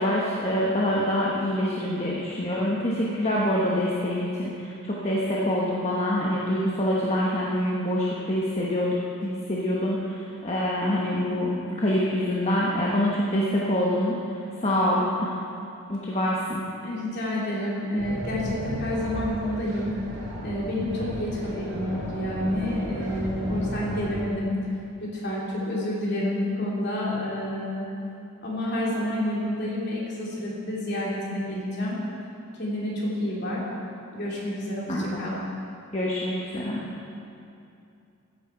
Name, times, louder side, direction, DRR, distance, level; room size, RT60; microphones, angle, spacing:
voice 1, 0.0-9.0 9.2-15.4 15.9-16.6 34.9-35.2 35.9-36.8, left 1 dB, 30° left, -5 dB, 1.1 m, -26 dB
voice 2, 16.8-19.9 20.4-24.5 25.0-27.9 28.4-32.0 32.6-33.6 34.1-35.4, left 1 dB, 50° left, -6 dB, 3.1 m, -29 dB
sound 1, 18.0-24.2, right 1 dB, 55° right, 2.7 m, -35 dB
15.0 x 9.6 x 4.6 m, 2.7 s
head